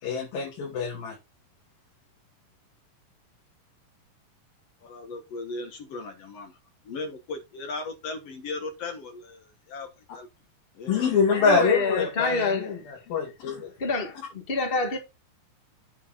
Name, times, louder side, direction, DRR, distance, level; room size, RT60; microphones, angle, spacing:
voice 1, 0.0-1.2 10.9-13.7, left 5 dB, 80° left, 4.3 m, -25 dB
voice 2, 4.8-6.6 6.8-10.3 10.8-11.2, left 3 dB, 55° left, 2.0 m, -37 dB
voice 3, 11.3-12.8 13.8-15.0, left 3 dB, 30° left, 1.0 m, -27 dB
8.9 x 4.6 x 4.9 m
omnidirectional pair, 4.1 m